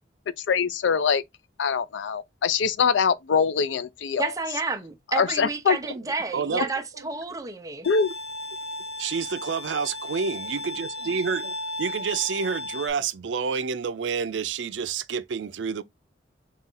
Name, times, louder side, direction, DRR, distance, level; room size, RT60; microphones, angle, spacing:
voice 1, 0.4-1.2 1.6-4.3 5.1-5.8 7.9-8.1, left 6 dB, 90° left, 0.4 m, -23 dB
voice 2, 4.2-7.9, right 3 dB, 20° right, 0.6 m, -30 dB
voice 3, 6.3-6.7 9.0-15.8, right 6 dB, 85° right, 0.5 m, -29 dB
Bowed string instrument, 7.8-12.9, left 1 dB, 70° left, 1.1 m, -35 dB
4.1 x 2.4 x 3.7 m
head